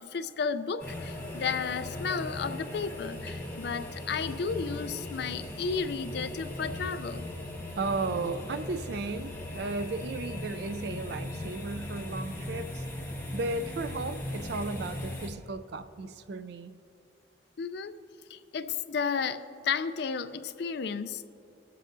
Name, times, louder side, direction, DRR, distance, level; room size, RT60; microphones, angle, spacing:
voice 1, 0.0-7.2 17.6-17.9 18.3-21.2, left 5 dB, 60° left, 11 dB, 0.4 m, -33 dB
sound 1, 0.8-15.3, left 1 dB, 10° left, 1.0 m, -38 dB
voice 2, 7.7-12.8 13.3-16.8, right 3 dB, 60° right, 11 dB, 0.4 m, -35 dB
21.5 x 7.6 x 2.6 m, 2.7 s
head